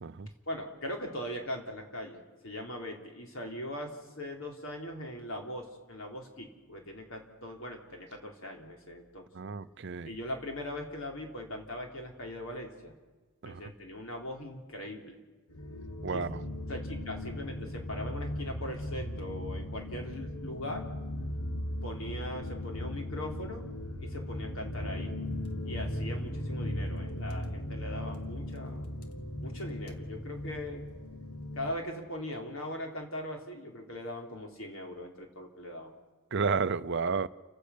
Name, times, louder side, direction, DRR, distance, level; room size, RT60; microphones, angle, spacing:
voice 1, 0.5-9.3 10.1-12.9 13.5-15.2 16.1-16.3 16.7-20.8 21.8-23.7 24.0-25.1 25.6-29.0 29.4-30.8 31.6-35.9, left 1 dB, 60° left, 3.7 m, -40 dB
voice 2, 9.3-10.1 13.4-13.7 16.0-16.4 36.3-37.3, right 5 dB, 50° right, 0.5 m, -31 dB
sound 1, 15.5-31.7, left 1 dB, 80° left, 1.8 m, -37 dB
30.0 x 10.5 x 8.5 m
head